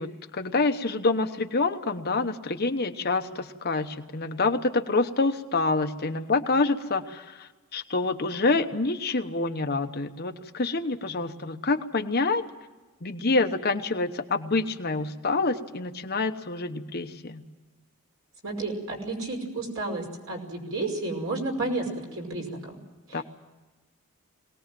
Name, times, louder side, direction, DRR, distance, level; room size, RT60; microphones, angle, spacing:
voice 1, 0.0-12.4 13.0-17.4 23.1-23.2, left 3 dB, 45° left, 6 dB, 1.1 m, -27 dB
voice 2, 18.4-22.8 23.1-23.2, right 2 dB, 60° right, 1 dB, 5.5 m, -31 dB
23.0 x 18.5 x 7.7 m, 1.3 s
head